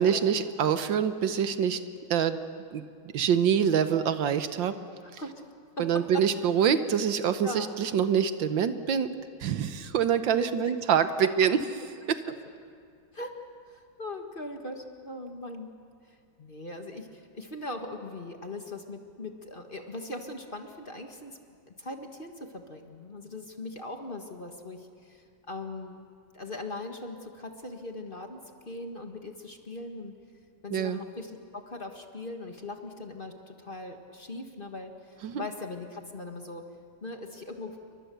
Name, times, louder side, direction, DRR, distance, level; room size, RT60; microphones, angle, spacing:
voice 1, 0.0-1.8 2.1-2.4 2.7-2.8 3.1-4.7 5.1-5.2 5.8-9.1 9.4-11.6 12.1-12.2 30.7-31.0 35.2-35.4, right 8 dB, 75° right, 10 dB, 1.7 m, -25 dB
voice 2, 5.0-5.3 5.8-6.3 7.4-7.7 9.5-9.9 10.4-10.5 12.3-12.4 13.1-13.4 13.7-15.7 16.4-21.4 21.7-26.0 26.3-30.1 30.6-36.7 37.0-37.8, left 2 dB, 30° left, 4 dB, 1.6 m, -40 dB
29.5 x 23.5 x 6.9 m, 2.3 s
omnidirectional pair, 2.1 m